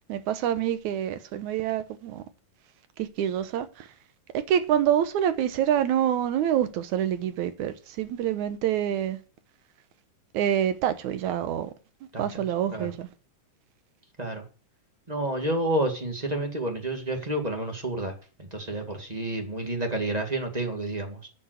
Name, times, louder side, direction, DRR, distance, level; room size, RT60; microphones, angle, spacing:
voice 1, 0.1-2.2 3.0-3.9 4.3-9.2 10.3-11.7 12.2-13.1, right 10 dB, 70° right, 2.3 m, -26 dB
voice 2, 15.1-21.3, right 1 dB, 15° right, 1.5 m, -30 dB
10.0 x 7.2 x 8.0 m
omnidirectional pair, 3.8 m